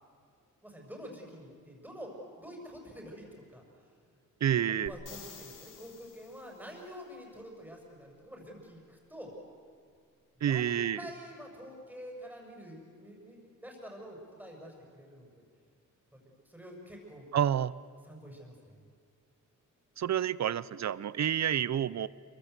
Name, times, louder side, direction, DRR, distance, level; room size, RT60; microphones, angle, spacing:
voice 1, 0.6-2.1 2.4-3.6 4.8-9.3 10.5-15.4 16.1-16.2 16.4-17.3 18.0-18.7, equal, 5° right, 0 dB, 6.6 m, -47 dB
voice 2, 4.4-4.9 10.4-11.0 17.3-17.7 20.0-22.1, right 9 dB, 60° right, 19 dB, 0.7 m, -29 dB
sound 1, 4.9-6.7 10.5-10.6, left 5 dB, 80° left, 3.4 m, -50 dB
28.5 x 24.0 x 8.2 m, 2.3 s
wide cardioid pair, 145°, 31 cm